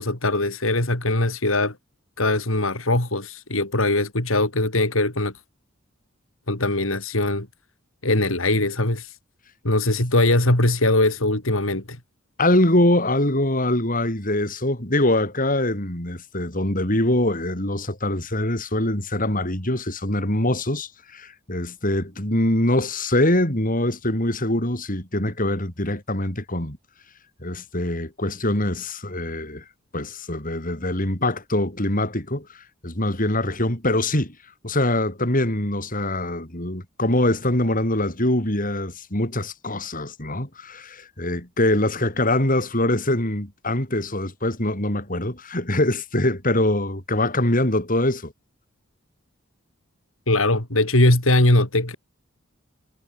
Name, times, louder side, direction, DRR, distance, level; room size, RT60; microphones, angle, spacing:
voice 1, 0.0-1.8 2.2-5.3 6.5-7.5 8.0-9.1 9.6-12.0 50.3-52.0, left 2 dB, 80° left, 4.4 m, -21 dB
voice 2, 12.4-26.8 27.4-29.6 29.9-34.4 34.6-48.3, left 1 dB, 40° left, 7.9 m, -23 dB
head